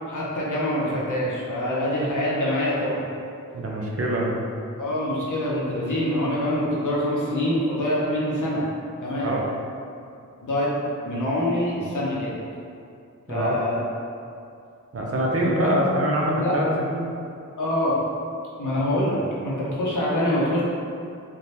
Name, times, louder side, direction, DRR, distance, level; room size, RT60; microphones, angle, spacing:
voice 1, 0.1-3.0 4.8-8.6 9.0-9.4 10.4-10.7 11.0-12.3 13.3-13.8 15.6-15.7 16.4-16.6 17.6-18.0 18.6-20.6, left 1 dB, 70° left, -6 dB, 0.8 m, -25 dB
voice 2, 3.5-4.3 9.2-9.4 13.3-13.6 14.9-17.1, right 1 dB, 45° right, -3 dB, 0.6 m, -24 dB
3.3 x 2.2 x 2.8 m, 2.5 s
cardioid pair, 45°, 32 cm